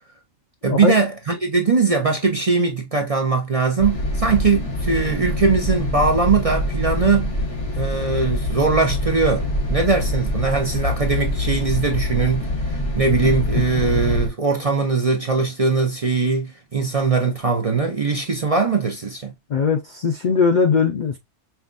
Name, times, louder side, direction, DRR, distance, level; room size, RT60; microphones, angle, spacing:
voice 1, 0.6-7.3 7.7-19.3, right 4 dB, 40° right, 0.6 m, -21 dB
sound 1, 3.8-14.3, left 1 dB, 25° left, 1.0 m, -24 dB
voice 2, 19.5-21.2, left 5 dB, 60° left, 0.5 m, -19 dB
5.6 x 2.3 x 2.5 m
omnidirectional pair, 1.4 m